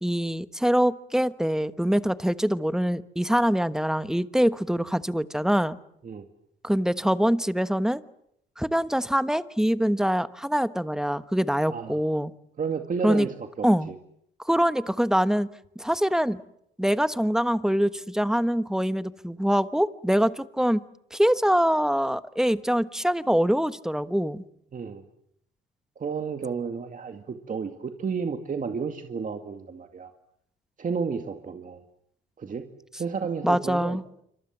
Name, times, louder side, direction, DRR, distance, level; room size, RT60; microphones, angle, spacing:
voice 1, 0.0-5.8 6.6-8.0 8.6-12.3 13.0-13.3 13.6-13.9 14.4-15.5 15.8-16.4 16.8-20.8 21.1-24.4 33.4-34.0, equal, 5° right, 13 dB, 1.2 m, -24 dB
voice 2, 11.7-12.0 12.6-13.9 24.7-25.0 26.0-30.1 30.8-31.8 32.4-32.7 33.0-34.0, right 5 dB, 40° right, 6 dB, 2.1 m, -32 dB
27.0 x 25.5 x 7.4 m, 0.74 s
cardioid pair, 90°, 20 cm